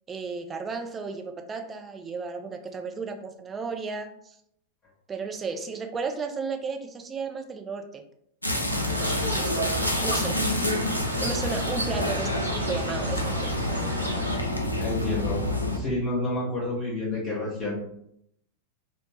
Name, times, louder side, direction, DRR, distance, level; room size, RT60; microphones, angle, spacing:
voice 1, 0.1-4.4 5.1-8.0 9.0-10.4 11.2-13.6, right 4 dB, 20° right, 4 dB, 0.3 m, -34 dB
sound 1, 8.4-15.8, left 1 dB, 85° left, 0.4 m, -28 dB
sound 2, 8.7-14.4, right 1 dB, 85° right, 0.5 m, -34 dB
voice 2, 14.8-15.4 15.7-17.7, left 2 dB, 30° left, -7 dB, 0.7 m, -29 dB
2.5 x 2.0 x 3.1 m, 0.72 s
figure-of-eight pair, 90°, 0 cm